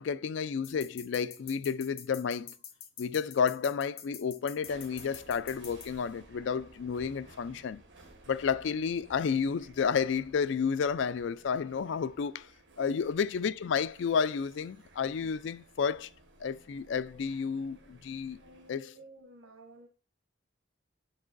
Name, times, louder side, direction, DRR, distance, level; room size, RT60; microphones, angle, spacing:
voice 1, 0.0-2.5 3.0-7.8 8.3-12.5 12.8-16.1 16.4-18.4 18.7-18.8, left 6 dB, 65° left, 0.3 m, -31 dB
sound 1, 0.6-5.9, left 9 dB, 50° left, 0.9 m, -46 dB
sound 2, 4.6-18.7, right 2 dB, 65° right, 1.4 m, -57 dB
voice 2, 12.8-13.1 18.4-19.9, right 1 dB, 85° right, 1.0 m, -52 dB
8.1 x 5.9 x 2.5 m
head